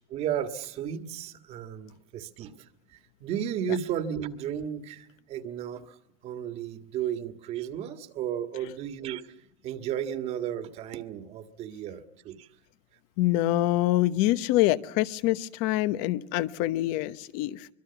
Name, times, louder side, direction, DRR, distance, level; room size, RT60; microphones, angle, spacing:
voice 1, 0.1-2.5 2.9-6.0 6.2-9.2 9.6-12.5, right 9 dB, 40° right, 9 dB, 1.7 m, -34 dB
voice 2, 13.2-17.7, left 15 dB, 60° left, 15 dB, 1.0 m, -25 dB
25.0 x 22.5 x 7.0 m, 0.79 s
cardioid pair, 160°, 16 cm